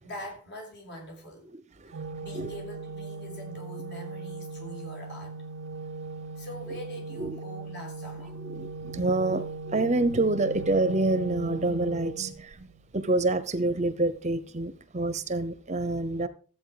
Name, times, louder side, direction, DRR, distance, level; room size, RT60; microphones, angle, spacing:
voice 1, 0.0-1.5 2.2-5.4 6.4-8.4, equal, 50° left, 6.1 m, -43 dB
Organ, 1.9-12.8, right 4 dB, 60° right, 0.6 m, -39 dB
voice 2, 8.4-12.7 12.9-16.3, right 2 dB, 30° right, 0.8 m, -27 dB
14.0 x 8.5 x 5.0 m
head